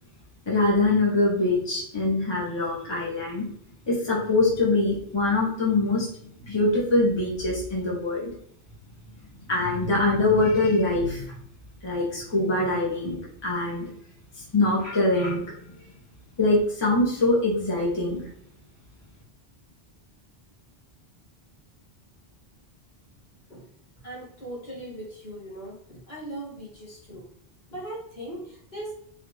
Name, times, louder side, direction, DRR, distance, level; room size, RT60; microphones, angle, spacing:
voice 1, 0.5-3.5 3.9-6.1 6.4-8.3 9.5-11.3 11.8-13.9 14.5-15.5 16.4-18.2, left 2 dB, 25° left, -5 dB, 1.0 m, -23 dB
voice 2, 24.0-27.3 27.7-28.9, right 1 dB, 70° left, -6 dB, 2.0 m, -39 dB
4.1 x 2.6 x 3.1 m, 0.68 s
omnidirectional pair, 1.0 m